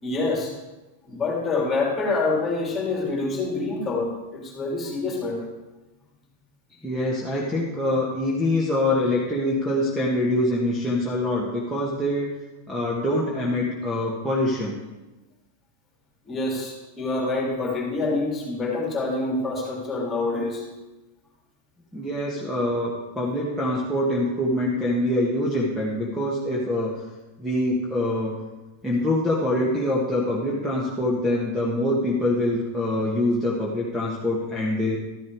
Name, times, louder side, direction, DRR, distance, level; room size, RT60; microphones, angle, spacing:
voice 1, 0.0-0.5 1.0-5.5 16.3-20.6, left 3 dB, 20° left, -1 dB, 3.0 m, -26 dB
voice 2, 6.8-12.3 12.7-14.8 21.9-27.0 27.4-28.3 28.8-35.0, left 1 dB, 5° right, -5 dB, 1.7 m, -24 dB
13.0 x 7.2 x 4.7 m, 1.1 s
supercardioid pair, 140°, 0 cm